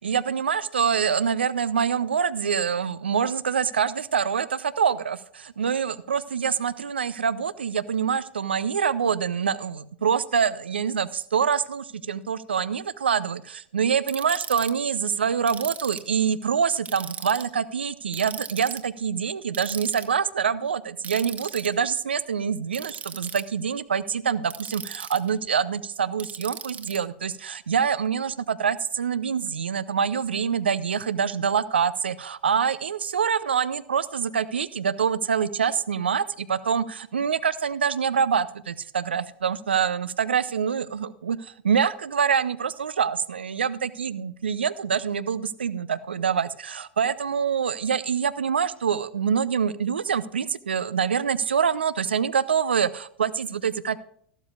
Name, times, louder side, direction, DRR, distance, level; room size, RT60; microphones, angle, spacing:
voice 1, 0.0-54.0, right 7 dB, 75° right, 16 dB, 0.6 m, -25 dB
Ratchet pawl, 14.1-14.7 15.5-16.1 16.9-17.5 18.1-18.8 19.5-20.0 21.0-21.7 22.7-23.4 24.5-25.3 26.2-27.0, right 7 dB, 25° right, 1.4 m, -37 dB
14.0 x 13.0 x 2.4 m, 0.65 s
figure-of-eight pair, 85°, 6 cm